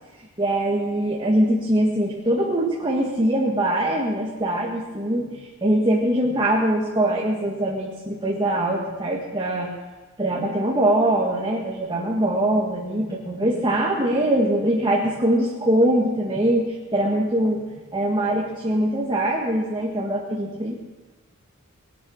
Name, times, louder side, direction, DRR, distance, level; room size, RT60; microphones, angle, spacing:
voice 1, 0.4-5.3 5.6-9.7 10.2-17.6 17.9-20.8, right 1 dB, 20° right, -3 dB, 1.8 m, -22 dB
20.0 x 11.0 x 6.5 m, 1.3 s
head